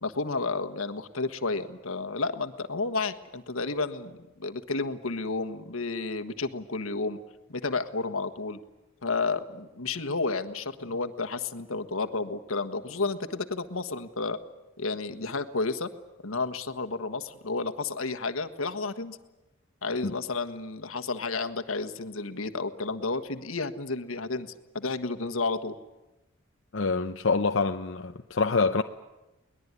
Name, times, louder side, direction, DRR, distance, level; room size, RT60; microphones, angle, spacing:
voice 1, 0.0-7.2 7.5-8.6 9.0-14.4 14.8-15.9 16.2-19.2 19.8-25.7, left 3 dB, 80° left, 8 dB, 1.5 m, -31 dB
voice 2, 26.7-28.8, left 4 dB, 60° left, 5 dB, 0.8 m, -26 dB
22.5 x 20.0 x 9.7 m, 1.0 s
head